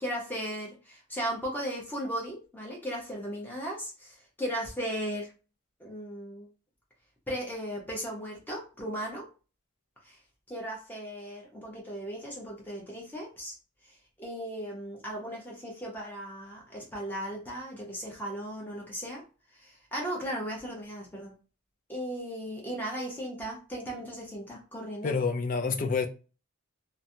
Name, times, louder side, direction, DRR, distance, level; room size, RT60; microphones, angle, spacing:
voice 1, 0.0-5.3 5.8-6.5 7.3-9.3 10.0-10.2 10.5-13.5 13.8-19.2 19.5-21.3 21.9-25.1, equal, 10° left, 0.8 m, -36 dB
voice 2, 25.0-26.1, left 4 dB, 35° left, 0.3 m, -28 dB
3.1 x 2.1 x 2.7 m
head